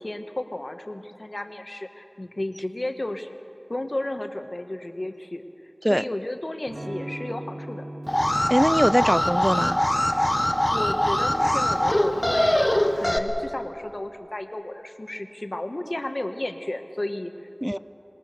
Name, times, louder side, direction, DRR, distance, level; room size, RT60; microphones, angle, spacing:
voice 1, 0.0-3.4 3.7-5.4 5.9-7.9 10.7-17.5, left 1 dB, 55° left, 6 dB, 1.5 m, -33 dB
Electric guitar / Strum, 6.7-12.4, right 1 dB, 90° right, 3.3 m, -41 dB
Alarm, 8.1-13.2, left 1 dB, 25° left, 1.4 m, -22 dB
voice 2, 8.5-9.8 17.6-17.8, equal, 5° right, 16 dB, 0.5 m, -22 dB
26.5 x 20.5 x 6.8 m, 2.7 s
wide cardioid pair, 45°, 0 cm